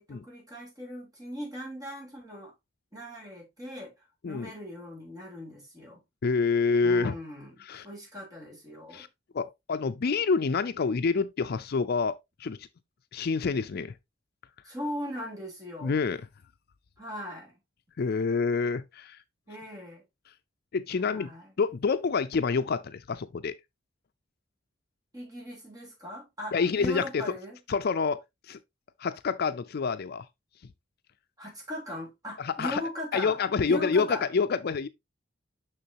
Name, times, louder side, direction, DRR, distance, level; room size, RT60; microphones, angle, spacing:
voice 1, 0.0-2.5 2.9-6.0 6.8-9.1 14.6-16.0 17.0-17.5 19.5-20.0 21.0-21.5 25.1-27.6 31.4-33.4 33.7-34.3, equal, 20° right, 3.2 m, -39 dB
voice 2, 6.2-7.1 7.7-7.9 8.9-9.1 9.3-12.6 13.1-13.9 15.8-16.2 18.0-19.2 20.7-21.3 21.6-23.5 26.5-27.2 27.7-28.2 28.5-28.6 29.0-30.2 32.4-32.8 33.1-34.9, left 5 dB, 55° left, 0.4 m, -27 dB
6.6 x 6.2 x 2.8 m
head